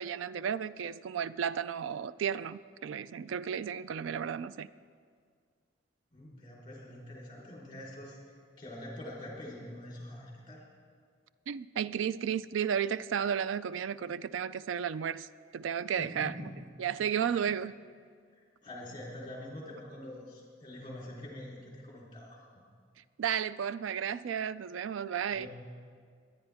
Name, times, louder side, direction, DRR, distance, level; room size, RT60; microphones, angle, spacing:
voice 1, 0.0-4.7 11.5-15.3 15.5-16.3 16.8-17.7 23.2-25.5, right 8 dB, 85° right, 0.3 m, -33 dB
voice 2, 6.1-8.2 8.6-10.6 16.0-16.5 17.2-17.5 18.6-22.4 25.3-25.5, left 1 dB, 25° left, 3.6 m, -45 dB
22.5 x 9.7 x 3.5 m
head